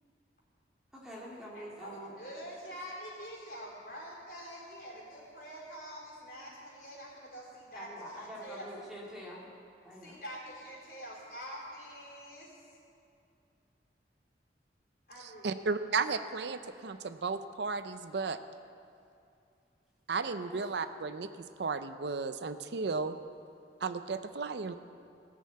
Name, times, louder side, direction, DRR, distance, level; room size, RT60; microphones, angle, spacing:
voice 1, 0.9-2.1 7.7-9.5 9.8-10.2 20.5-20.6, equal, 5° right, -5 dB, 2.1 m, -45 dB
voice 2, 1.5-8.7 10.0-12.7 15.1-15.6, equal, 55° left, -5 dB, 4.1 m, -46 dB
voice 3, 15.2-18.4 20.1-21.3 21.6-23.2 23.8-24.7, right 4 dB, 70° right, 10 dB, 0.5 m, -34 dB
17.5 x 6.6 x 8.3 m, 2.5 s
head